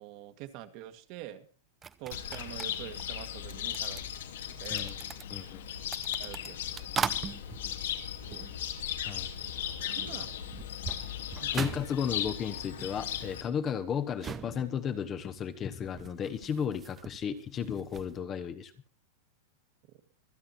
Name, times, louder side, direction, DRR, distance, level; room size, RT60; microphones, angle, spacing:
voice 1, 0.0-1.5 2.0-4.0 4.5-4.9 6.2-6.9 8.2-8.6 10.0-10.4 11.3-11.6, right 13 dB, 40° right, 9 dB, 1.7 m, -46 dB
sound 1, 1.8-9.1 9.4-18.2, right 7 dB, 15° right, 0.7 m, -42 dB
Cricket, 2.1-13.4, left 10 dB, 80° left, 2.7 m, -37 dB
voice 2, 5.3-5.6 9.1-9.3 11.5-18.7, left 7 dB, 20° left, 9 dB, 1.1 m, -34 dB
25.5 x 8.8 x 4.3 m, 0.37 s
supercardioid pair, 165°, 0 cm